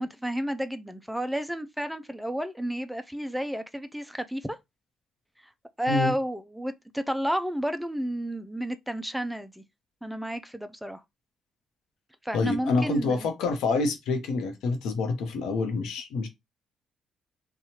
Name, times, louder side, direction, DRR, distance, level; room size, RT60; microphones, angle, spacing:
voice 1, 0.0-4.6 5.4-5.5 5.8-9.6 10.0-11.0 12.2-13.3, equal, 5° right, 0.4 m, -31 dB
voice 2, 12.3-16.3, left 3 dB, 85° left, 0.9 m, -27 dB
3.0 x 2.3 x 2.9 m
cardioid pair, 90°, 0 cm